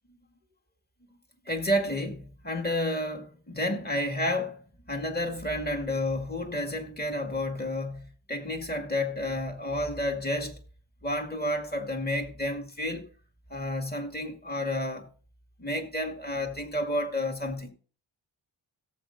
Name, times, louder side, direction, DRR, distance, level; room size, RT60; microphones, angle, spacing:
voice 1, 1.5-4.6 4.9-10.6 11.0-13.0 13.5-15.1 15.6-17.7, left 1 dB, 20° left, 2.0 m, -30 dB
17.5 x 7.7 x 2.7 m
wide cardioid pair, 90°, 48 cm